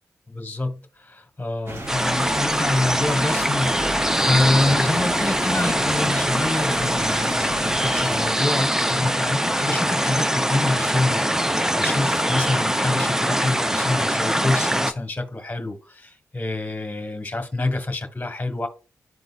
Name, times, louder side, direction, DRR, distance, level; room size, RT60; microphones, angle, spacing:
voice 1, 0.3-18.7, left 2 dB, 25° left, 1.6 m, -26 dB
sound 1, 1.7-8.3, right 1 dB, 40° right, 2.2 m, -33 dB
sound 2, 1.9-14.9, equal, 10° right, 0.7 m, -23 dB
11.5 x 3.9 x 2.5 m
supercardioid pair, 40°, 7 cm